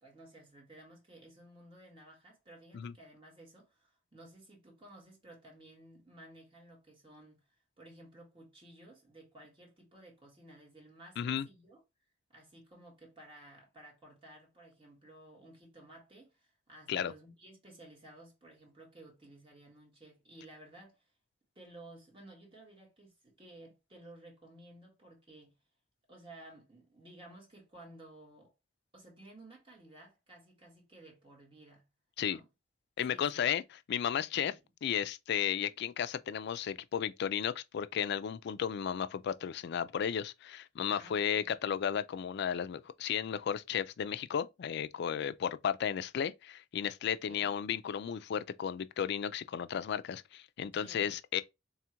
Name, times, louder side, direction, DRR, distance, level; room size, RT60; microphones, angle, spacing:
voice 1, 0.0-7.5 7.8-11.8 12.3-21.1 21.6-25.6 26.1-28.5 28.9-31.9 32.2-32.5 33.1-33.4 34.4-34.5 40.8-41.5 47.2-47.5 50.8-51.1, right 1 dB, 30° right, 1.8 m, -55 dB
voice 2, 11.2-11.5 16.9-17.1 32.2-32.4 33.0-33.6 33.9-34.5 34.8-51.4, left 8 dB, 60° left, 0.3 m, -34 dB
3.4 x 2.4 x 4.4 m
head